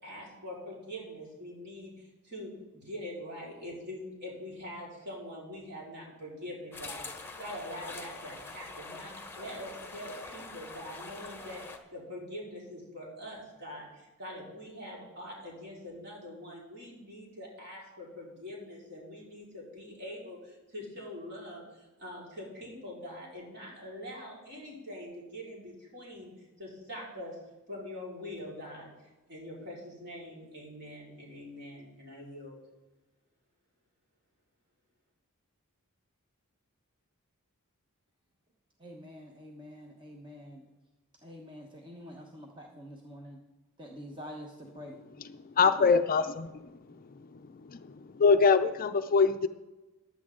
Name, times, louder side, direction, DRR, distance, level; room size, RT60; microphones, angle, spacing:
voice 1, 0.0-26.3 26.6-27.4 27.7-28.9 29.3-32.6, left 1 dB, 50° right, -4 dB, 4.4 m, -44 dB
sound 1, 6.7-11.8, left 3 dB, 10° left, 1.1 m, -44 dB
voice 2, 38.8-40.6 41.2-43.4 43.8-45.0, equal, 20° right, 0 dB, 1.1 m, -46 dB
voice 3, 45.6-46.5 47.7-47.8 48.2-49.5, left 5 dB, 40° left, 10 dB, 0.5 m, -23 dB
15.0 x 10.5 x 3.7 m, 1.1 s
head